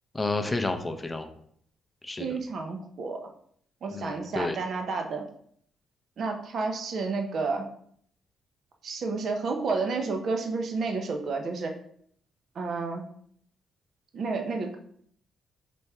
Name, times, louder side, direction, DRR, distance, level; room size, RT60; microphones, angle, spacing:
voice 1, 0.1-1.3 2.0-2.3 3.9-4.6, left 2 dB, 15° left, 7 dB, 0.5 m, -30 dB
voice 2, 2.2-3.2 3.8-5.2 6.2-7.7 8.8-11.7 12.5-13.0 14.1-14.8, right 4 dB, 55° right, 4 dB, 0.7 m, -30 dB
4.1 x 3.3 x 3.5 m, 0.64 s
cardioid pair, 90°, 0 cm